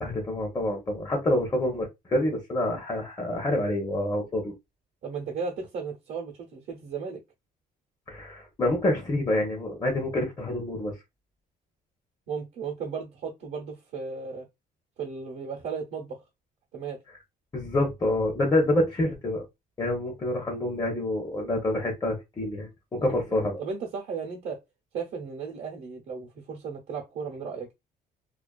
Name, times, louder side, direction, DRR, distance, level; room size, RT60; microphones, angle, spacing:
voice 1, 0.0-4.5 8.1-10.9 17.5-19.4 19.8-23.6, left 1 dB, 20° left, 0.6 m, -27 dB
voice 2, 5.0-7.2 12.3-14.5 15.0-16.2 16.7-17.0 23.0-24.6 24.9-27.7, right 5 dB, 70° right, 0.7 m, -35 dB
2.4 x 2.3 x 2.2 m
cardioid pair, 110°, 17 cm